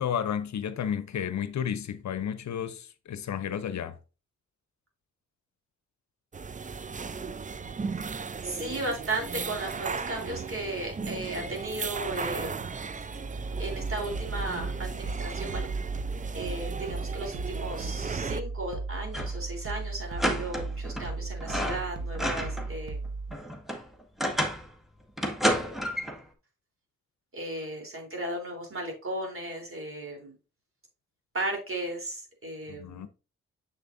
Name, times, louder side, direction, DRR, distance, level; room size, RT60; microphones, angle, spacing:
voice 1, 0.0-4.0 32.7-33.1, left 8 dB, 65° left, 0.7 m, -32 dB
sound 1, 6.3-18.4, right 5 dB, 25° right, 0.5 m, -36 dB
voice 2, 8.4-12.6 13.6-15.7 16.3-23.0 25.5-25.8 27.3-30.4 31.3-33.1, right 1 dB, 45° right, 3.6 m, -35 dB
sound 2, 13.8-23.4, right 3 dB, 75° right, 1.0 m, -36 dB
sound 3, 19.1-19.5 19.7-19.8 20.2-21.1 21.4-22.7 23.1-24.7 25.2-26.2, equal, ahead, 1.8 m, -30 dB
7.3 x 6.6 x 2.6 m
supercardioid pair, 50°, 30 cm